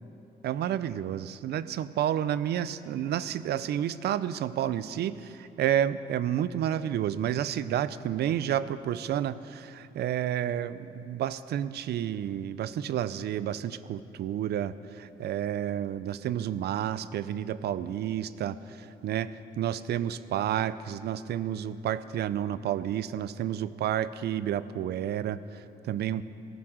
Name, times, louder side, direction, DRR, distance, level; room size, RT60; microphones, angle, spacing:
voice 1, 0.4-26.2, right 10 dB, 80° right, 16 dB, 0.5 m, -30 dB
17.5 x 11.0 x 6.4 m, 2.8 s
cardioid pair, 120°, 17 cm